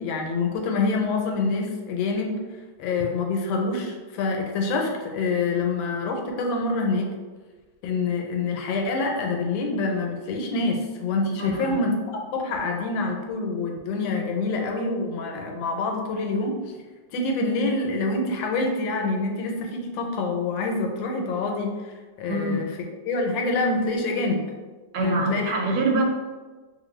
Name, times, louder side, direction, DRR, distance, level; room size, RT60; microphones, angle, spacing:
voice 1, 0.0-2.4 2.8-7.1 7.8-11.9 12.3-16.6 17.1-22.7 23.1-24.4 25.0-25.5 25.9-26.0, left 3 dB, 90° left, 2 dB, 1.3 m, -26 dB
voice 2, 11.4-11.8 22.3-22.6 24.9-26.0, right 2 dB, 90° right, 1 dB, 1.4 m, -24 dB
2.9 x 2.6 x 3.0 m, 1.3 s
omnidirectional pair, 2.0 m